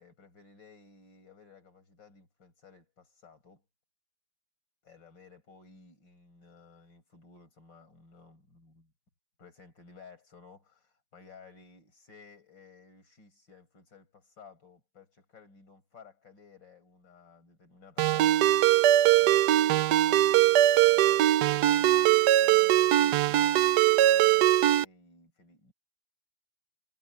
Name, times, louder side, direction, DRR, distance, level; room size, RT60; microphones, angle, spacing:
voice 1, 0.0-3.6 4.8-8.9 9.4-18.8 19.2-25.7, left 5 dB, 75° left, 5.9 m, -56 dB
Ringtone, 18.0-24.9, right 14 dB, 70° right, 1.1 m, -21 dB
omnidirectional pair, 2.0 m